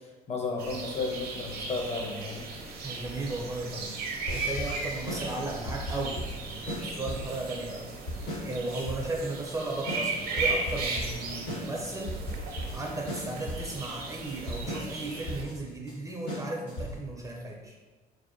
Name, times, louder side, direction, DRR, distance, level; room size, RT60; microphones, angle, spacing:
voice 1, 0.3-2.5, left 3 dB, 40° left, 0 dB, 0.7 m, -33 dB
sound 1, 0.6-15.4, right 3 dB, 65° right, 0.6 m, -37 dB
voice 2, 2.8-7.9 8.4-12.2 12.7-17.8, right 2 dB, 20° right, -1 dB, 0.4 m, -35 dB
sound 2, 4.3-17.2, equal, 75° left, 1.5 m, -37 dB
2.9 x 2.7 x 2.5 m, 1.3 s
cardioid pair, 110°, 17 cm